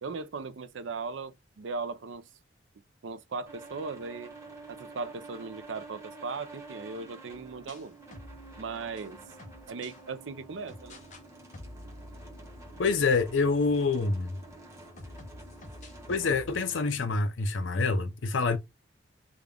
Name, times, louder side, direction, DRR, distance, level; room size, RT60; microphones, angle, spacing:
voice 1, 0.0-2.3 3.0-4.3 4.7-8.0 8.6-9.2 9.7-11.0, right 4 dB, 75° right, 0.5 m, -38 dB
sound 1, 3.5-16.9, right 2 dB, 15° right, 1.1 m, -49 dB
sound 2, 7.3-10.0 10.7-11.2 11.5-14.5 15.0-16.6, left 1 dB, 40° left, 0.9 m, -49 dB
voice 2, 12.8-14.4 16.1-18.6, left 4 dB, 75° left, 0.6 m, -26 dB
3.7 x 2.3 x 3.3 m
head